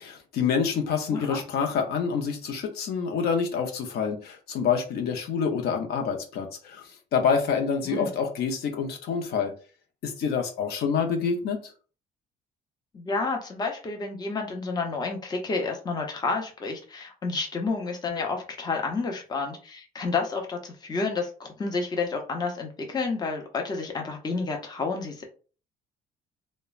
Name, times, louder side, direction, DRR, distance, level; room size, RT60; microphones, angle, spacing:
voice 1, 0.0-6.8 7.1-9.5 10.0-11.6, left 6 dB, 70° left, 3 dB, 0.6 m, -27 dB
voice 2, 12.9-25.2, left 4 dB, 25° left, 3 dB, 0.6 m, -30 dB
3.0 x 2.1 x 2.3 m, 0.38 s
cardioid pair, 110°, 17 cm